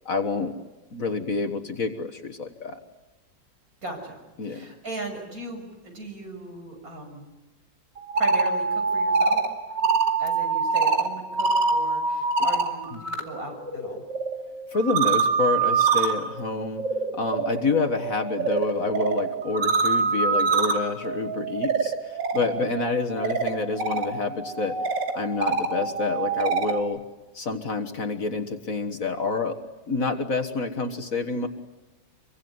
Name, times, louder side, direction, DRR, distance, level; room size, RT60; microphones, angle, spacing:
voice 1, 0.1-0.5 0.9-2.8 4.4-4.7 12.9-13.0 14.7-16.8 17.1-24.8 25.1-27.0 27.3-29.6 29.9-31.5, left 4 dB, 50° left, 7 dB, 1.8 m, -28 dB
voice 2, 3.8-7.3 8.2-9.4 10.2-14.0 22.3-22.7, right 2 dB, 50° right, 2 dB, 6.9 m, -38 dB
sound 1, 8.0-13.2 13.5-26.8, right 4 dB, 80° right, 3.2 m, -25 dB
26.0 x 24.0 x 9.6 m, 1.1 s
omnidirectional pair, 1.9 m